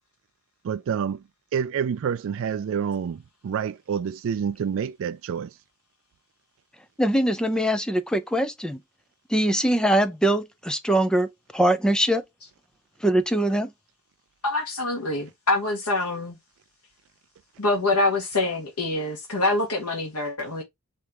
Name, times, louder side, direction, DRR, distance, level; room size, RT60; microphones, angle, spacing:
voice 1, 0.6-1.2 1.5-5.5, right 7 dB, 60° right, 0.3 m, -28 dB
voice 2, 7.0-8.8 9.3-12.2 13.0-13.7, right 1 dB, 5° left, 0.5 m, -22 dB
voice 3, 14.4-16.4 17.6-20.6, left 2 dB, 90° left, 1.7 m, -25 dB
4.3 x 3.5 x 3.4 m
head